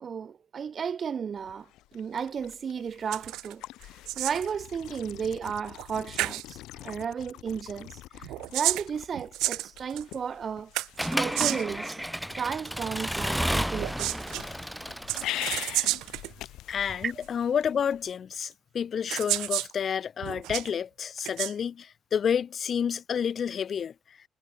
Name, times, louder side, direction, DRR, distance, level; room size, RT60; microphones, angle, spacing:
voice 1, 0.0-1.7 1.9-3.6 4.2-10.7 11.2-12.1 12.4-14.3 17.0-17.1, right 7 dB, 35° right, 1.0 m, -34 dB
sound 1, 1.4-18.1, left 16 dB, 80° left, 6.3 m, -44 dB
sound 2, 3.1-3.5 3.8-4.5 5.8-5.9 6.2-6.4 8.2-10.1 10.7-11.8 13.7-14.4 15.1-16.3 17.2-17.3 18.4-18.5 19.1-19.7 20.2-20.7 21.2-21.5, right 17 dB, 85° right, 0.4 m, -31 dB
Accelerating revving vroom / Mechanisms, 11.0-15.9, equal, ahead, 1.3 m, -32 dB
voice 2, 16.7-23.9, left 7 dB, 40° left, 1.6 m, -29 dB
cardioid pair, 135°, 0 cm